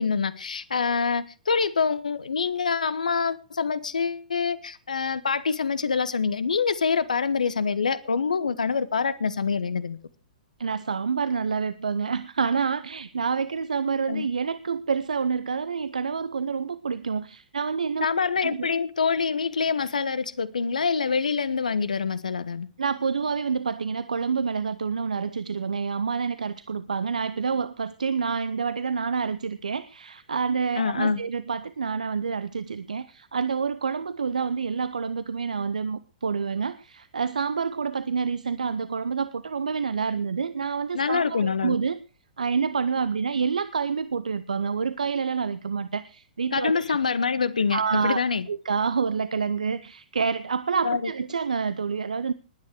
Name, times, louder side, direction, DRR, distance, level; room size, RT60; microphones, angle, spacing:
voice 1, 0.0-10.0 14.1-14.3 18.0-22.7 30.8-31.2 40.9-41.8 46.5-48.4 50.8-51.0, left 5 dB, 70° left, 1.2 m, -25 dB
voice 2, 10.6-18.1 18.4-18.7 22.8-42.0 42.4-47.0 47.7-48.2 48.5-52.3, right 5 dB, 70° right, 0.8 m, -28 dB
20.0 x 9.6 x 4.7 m
figure-of-eight pair, 110°, 4 cm